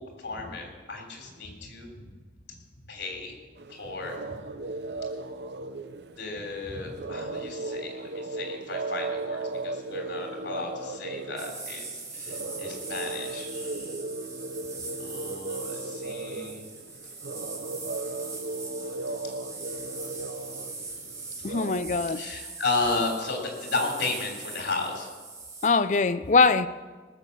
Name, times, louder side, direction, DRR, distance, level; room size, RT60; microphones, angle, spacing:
voice 1, 0.2-1.9 2.9-3.4 3.7-4.3 6.2-13.9 15.0-16.6 19.2-19.3 22.1-25.1, left 3 dB, 90° left, 3.3 m, -34 dB
sound 1, 3.6-21.8, right 3 dB, 75° right, 0.6 m, -36 dB
sound 2, 11.4-25.7, right 3 dB, 20° right, 1.7 m, -41 dB
voice 2, 21.4-22.2 25.6-26.7, left 4 dB, 45° left, 0.5 m, -22 dB
18.5 x 7.4 x 6.8 m
head